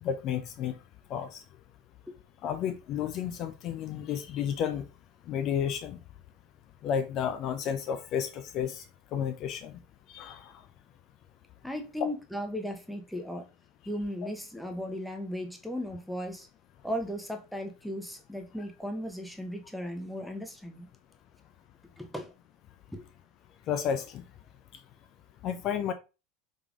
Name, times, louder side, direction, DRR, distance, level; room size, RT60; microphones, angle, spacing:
voice 1, 0.0-0.8 1.1-1.4 2.4-4.8 5.3-6.0 6.8-8.8 9.1-9.7 10.1-10.5 23.7-24.2 25.4-25.9, left 8 dB, 50° left, 0.4 m, -32 dB
voice 2, 11.6-13.5 13.8-16.5 16.8-20.9 22.0-22.3 22.9-23.0, equal, ahead, 0.7 m, -36 dB
3.5 x 3.4 x 2.3 m
hypercardioid pair, 85°, 0 cm